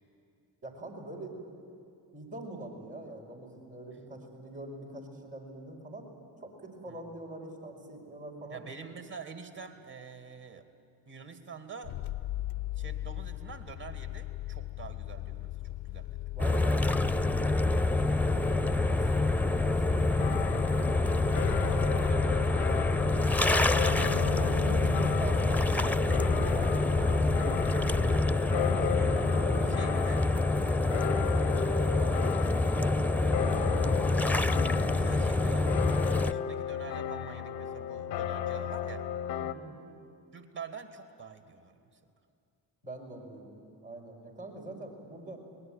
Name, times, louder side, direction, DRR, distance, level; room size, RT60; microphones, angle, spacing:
voice 1, 0.6-1.4 2.1-6.1 6.4-8.6 16.3-16.9 18.3-20.2 23.3-27.8 29.5-30.3 30.7-33.9 39.4-39.8 42.8-45.4, right 2 dB, 85° right, -5 dB, 5.2 m, -44 dB
voice 2, 8.5-10.7 11.1-12.0 12.8-16.3 21.0-23.5 28.6-29.3 29.7-30.2 34.8-39.1 40.3-41.8, right 5 dB, 55° right, 7 dB, 2.4 m, -47 dB
sound 1, 11.8-28.4, left 16 dB, 55° left, 0.5 m, -39 dB
sound 2, 16.4-36.3, left 2 dB, 5° left, 0.5 m, -27 dB
sound 3, 20.2-39.5, left 10 dB, 85° left, 0.8 m, -35 dB
24.0 x 19.5 x 9.2 m, 2.5 s
hypercardioid pair, 40°, 49 cm